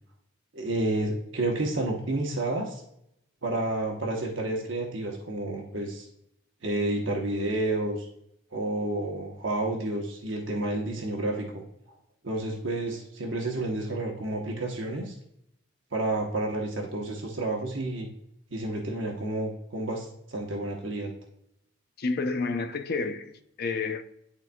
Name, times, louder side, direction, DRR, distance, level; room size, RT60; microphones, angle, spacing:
voice 1, 0.5-2.8 3.4-6.1 6.6-8.1 8.5-11.6 12.2-15.2 15.9-18.1 18.5-21.1, right 2 dB, 65° right, 1.0 m, -30 dB
voice 2, 22.0-24.0, left 4 dB, 50° left, 0.6 m, -30 dB
11.5 x 4.0 x 2.2 m
head